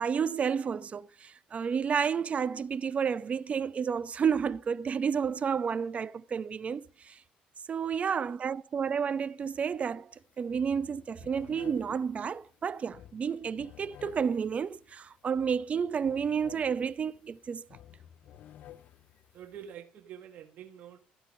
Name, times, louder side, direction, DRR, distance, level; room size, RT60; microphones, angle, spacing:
voice 1, 0.0-7.2 7.7-10.1 10.4-17.7, right 6 dB, 40° right, 0.8 m, -31 dB
sound 1, 10.1-10.2 10.5-19.7, left 11 dB, 60° left, 0.7 m, -54 dB
voice 2, 19.3-21.0, right 9 dB, 65° right, 1.8 m, -46 dB
13.0 x 8.9 x 5.4 m
supercardioid pair, 80°, 3 cm